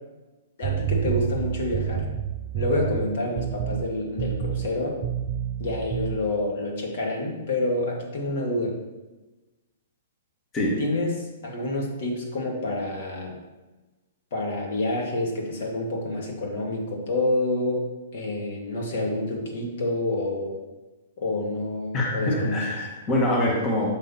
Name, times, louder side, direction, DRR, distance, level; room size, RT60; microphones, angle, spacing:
voice 1, 0.6-2.1 2.5-5.0 5.6-8.8 10.8-13.4 14.3-17.9 18.1-20.6 21.2-22.7, left 2 dB, 60° left, 0 dB, 2.0 m, -28 dB
sound 1, 0.6-3.0 3.4-3.9 4.2-4.7 5.0-6.2, right 9 dB, 40° right, 0.4 m, -28 dB
voice 2, 21.9-23.9, left 1 dB, 25° left, -2 dB, 1.4 m, -24 dB
6.5 x 5.8 x 4.2 m, 1.1 s
hypercardioid pair, 125°, 0 cm